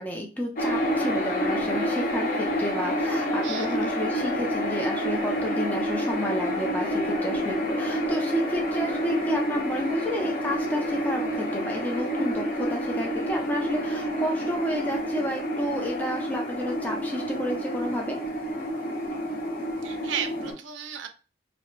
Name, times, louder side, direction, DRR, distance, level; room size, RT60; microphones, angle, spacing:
voice 1, 0.0-18.2, equal, 10° left, 0 dB, 0.5 m, -31 dB
sound 1, 0.6-20.5, equal, 50° left, 0.8 m, -28 dB
voice 2, 3.4-3.9 19.8-21.1, right 8 dB, 85° right, 7 dB, 0.4 m, -34 dB
2.3 x 2.1 x 3.0 m, 0.34 s
head